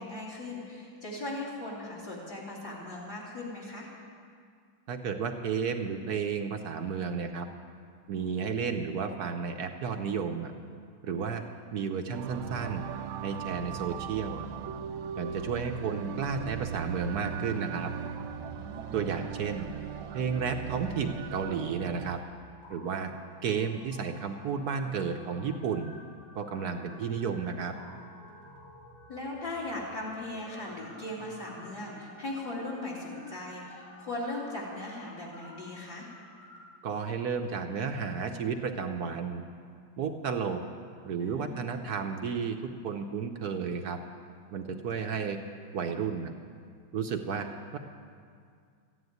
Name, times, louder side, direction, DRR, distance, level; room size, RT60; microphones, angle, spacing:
voice 1, 0.0-3.9 11.3-11.4 18.5-19.0 29.1-36.1 41.2-41.8, left 2 dB, 50° left, -5 dB, 3.2 m, -39 dB
voice 2, 4.9-7.5 8.1-10.5 11.0-11.4 11.7-12.9 13.2-14.5 15.2-17.9 18.9-19.7 20.1-22.2 22.7-23.1 23.4-25.9 26.4-27.7 36.8-39.4 40.0-40.6 41.0-44.0 44.5-45.4 45.7-46.3 46.9-47.8, right 6 dB, 60° right, 5 dB, 1.1 m, -32 dB
sound 1, 12.1-22.2, right 8 dB, 90° right, 1.5 m, -38 dB
sound 2, 18.1-19.5 19.7-20.0 20.6-36.6, left 1 dB, 85° left, 5.1 m, -53 dB
14.5 x 9.9 x 9.4 m, 2.2 s
omnidirectional pair, 2.2 m